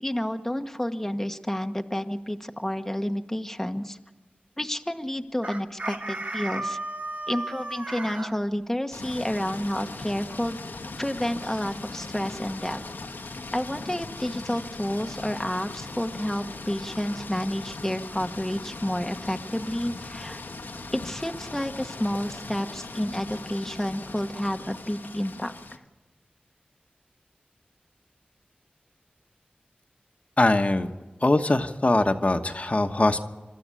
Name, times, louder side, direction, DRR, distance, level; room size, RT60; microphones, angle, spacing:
voice 1, 0.0-4.0 4.6-6.8 7.3-10.6 11.0-12.8 13.5-20.4 20.9-25.8, equal, 10° left, 5 dB, 1.2 m, -30 dB
Chicken rooster, 5.4-8.3, right 2 dB, 50° right, 2.4 m, -34 dB
sound 1, 8.9-25.8, left 3 dB, 85° left, 1.4 m, -39 dB
voice 2, 30.4-30.9 31.2-33.2, left 2 dB, 45° left, 6 dB, 1.2 m, -22 dB
26.0 x 13.0 x 8.4 m, 1.2 s
cardioid pair, 40°, 3 cm